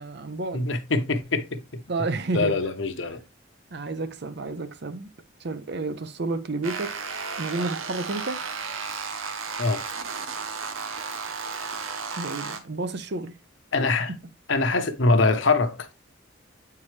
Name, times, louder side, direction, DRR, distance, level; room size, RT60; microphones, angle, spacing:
voice 1, 0.0-0.7 1.9-2.6 3.7-5.1 5.4-6.9 7.4-8.4 12.2-13.3, right 3 dB, 55° right, 0.7 m, -31 dB
voice 2, 0.5-1.8 2.3-3.2 9.6-9.8 13.7-14.1 14.5-15.9, left 3 dB, 65° left, 1.0 m, -23 dB
sound 1, 6.6-12.6, right 5 dB, 85° right, 1.0 m, -33 dB
8.4 x 4.7 x 3.2 m
head